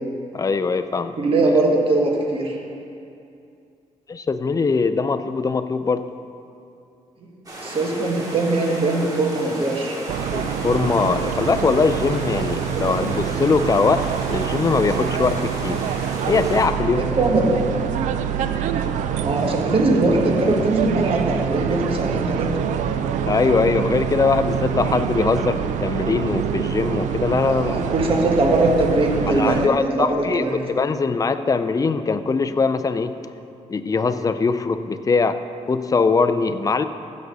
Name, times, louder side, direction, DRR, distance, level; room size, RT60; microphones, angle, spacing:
voice 1, 0.3-1.2 4.1-6.0 10.3-15.8 16.3-17.1 23.3-27.8 29.4-33.1 33.7-35.4 35.7-36.8, left 4 dB, 30° left, 11 dB, 0.5 m, -21 dB
voice 2, 1.2-2.6 7.6-10.0 17.0-17.5 19.2-22.5 27.5-30.6, right 2 dB, 50° right, -1 dB, 1.8 m, -21 dB
sound 1, 7.5-16.7, right 1 dB, 30° right, 2.2 m, -35 dB
sound 2, 10.1-29.7, right 8 dB, 90° right, 0.4 m, -25 dB
15.0 x 6.2 x 4.1 m, 2.6 s
cardioid pair, 90°, 12 cm